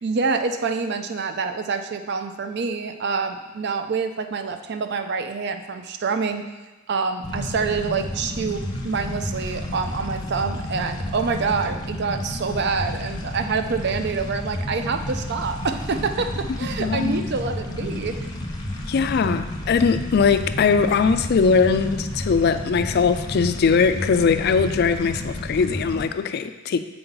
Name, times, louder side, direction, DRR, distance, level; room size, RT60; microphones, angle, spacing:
voice 1, 0.0-6.4 6.9-18.1, right 4 dB, 55° right, 7 dB, 0.5 m, -26 dB
sound 1, 7.2-26.1, left 1 dB, 20° left, 0.7 m, -31 dB
voice 2, 16.6-17.3 18.9-26.8, left 5 dB, 55° left, 10 dB, 0.3 m, -20 dB
6.8 x 4.4 x 3.9 m, 1.2 s
head